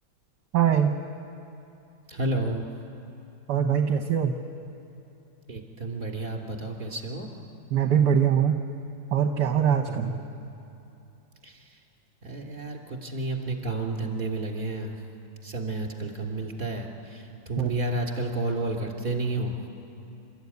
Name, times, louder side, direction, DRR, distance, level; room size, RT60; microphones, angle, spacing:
voice 1, 0.5-0.9 3.5-4.3 7.7-8.6 9.1-10.1 17.6-17.7, right 8 dB, 65° right, 5 dB, 1.4 m, -22 dB
voice 2, 2.1-2.7 5.5-7.3 9.9-10.2 11.4-11.6 12.2-14.9 15.4-19.5, right 2 dB, 25° right, 1 dB, 3.0 m, -31 dB
29.0 x 13.5 x 9.6 m, 2.9 s
omnidirectional pair, 2.2 m